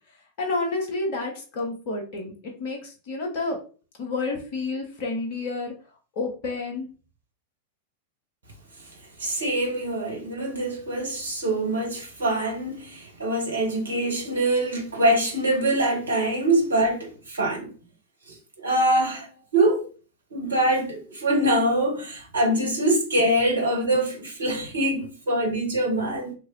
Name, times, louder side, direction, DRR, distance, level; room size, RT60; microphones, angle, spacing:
voice 1, 0.4-2.3 2.6-3.6 4.0-5.7 6.2-6.9, left 3 dB, 50° left, 1.0 m, -29 dB
voice 2, 9.2-17.7 18.6-19.3 19.5-19.9 20.3-26.3, right 1 dB, 75° right, 0.8 m, -24 dB
2.9 x 2.6 x 2.8 m
figure-of-eight pair, 90°, 0 cm